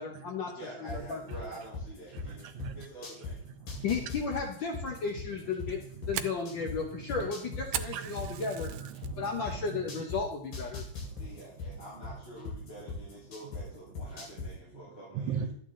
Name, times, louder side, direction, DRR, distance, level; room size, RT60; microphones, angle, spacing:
voice 1, 0.0-0.5 0.8-1.2 3.8-5.8 6.1-8.7 9.2-10.8, left 5 dB, 65° left, 1.2 m, -34 dB
voice 2, 0.5-2.4 2.8-3.4 11.2-15.5, right 1 dB, 40° left, 4.2 m, -47 dB
sound 1, 0.9-3.3 3.7-6.8 7.1-10.2 10.5-13.6 14.0-14.5, left 5 dB, 85° left, 4.1 m, -38 dB
voice 3, 3.5-3.9 4.9-5.0 5.2-5.3 5.9-6.3 6.6-7.3 7.8-10.0 10.7-11.8 14.7-14.8 15.1-15.5, right 7 dB, 70° right, 2.2 m, -41 dB
Fire, 5.6-9.1 9.5-9.9 10.3-10.4 10.9-11.3, right 12 dB, 85° right, 2.2 m, -39 dB
12.0 x 8.9 x 3.8 m
omnidirectional pair, 3.6 m